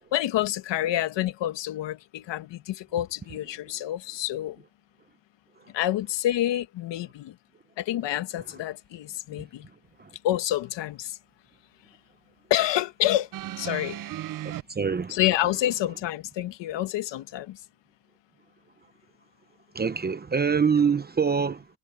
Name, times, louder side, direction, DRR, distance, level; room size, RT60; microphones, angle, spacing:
voice 1, 0.1-4.6 5.7-7.3 7.8-9.7 10.2-11.2 12.5-13.3 13.6-14.0 15.1-17.6, left 13 dB, 65° left, 1.5 m, -28 dB
sound 1, 13.3-14.6 15.6-15.7, right 13 dB, 45° right, 0.6 m, -35 dB
voice 2, 14.4-15.2 19.7-21.7, right 6 dB, 20° right, 0.9 m, -25 dB
cardioid pair, 120°, 46 cm